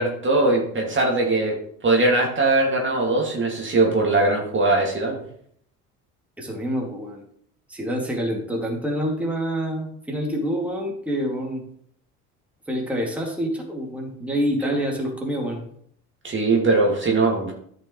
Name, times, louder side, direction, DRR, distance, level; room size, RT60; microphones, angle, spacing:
voice 1, 0.0-1.6 1.8-5.2 14.6-14.8 16.2-17.5, right 2 dB, 25° right, -1 dB, 2.2 m, -20 dB
voice 2, 6.4-7.2 7.7-11.6 12.7-15.6, equal, 5° right, -1 dB, 2.3 m, -27 dB
13.5 x 6.0 x 3.1 m, 0.64 s
figure-of-eight pair, 60°, 45 cm